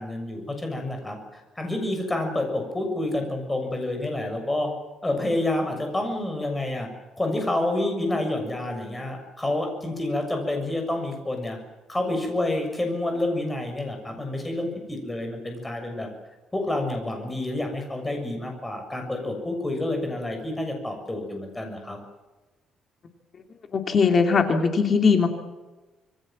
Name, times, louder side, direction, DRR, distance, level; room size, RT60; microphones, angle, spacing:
voice 1, 0.0-4.7 5.0-6.9 7.2-11.6 11.9-16.1 16.5-22.0, left 1 dB, 10° left, 4 dB, 6.9 m, -28 dB
voice 2, 23.7-25.3, left 5 dB, 35° left, 5 dB, 2.8 m, -20 dB
27.0 x 22.5 x 7.6 m, 1.1 s
cardioid pair, 155°, 0 cm